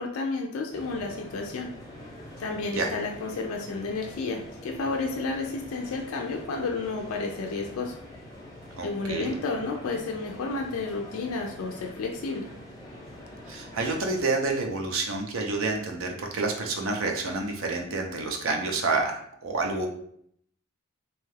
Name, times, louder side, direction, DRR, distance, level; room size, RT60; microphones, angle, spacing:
voice 1, 0.0-1.7 2.4-7.9 8.8-12.5, left 3 dB, 65° left, 1 dB, 0.3 m, -31 dB
sound 1, 0.7-14.3, left 1 dB, 15° left, 0.6 m, -45 dB
voice 2, 8.8-9.4 13.5-19.9, right 3 dB, 60° right, 2 dB, 0.5 m, -29 dB
2.7 x 2.3 x 3.2 m, 0.68 s
head